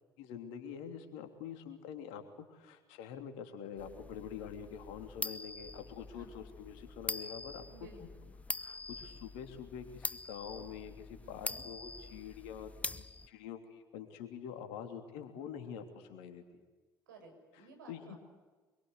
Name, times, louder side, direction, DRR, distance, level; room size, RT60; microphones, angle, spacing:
voice 1, 0.2-2.2 2.5-7.7 8.6-16.6 17.9-18.2, left 8 dB, 65° left, 7 dB, 3.2 m, -46 dB
sound 1, 3.8-13.3, left 2 dB, 15° left, 0.9 m, -44 dB
voice 2, 7.7-8.3 11.2-11.6 17.1-18.2, right 3 dB, 75° right, 3 dB, 6.1 m, -55 dB
25.5 x 23.5 x 8.2 m, 1.3 s
figure-of-eight pair, 55°, 10 cm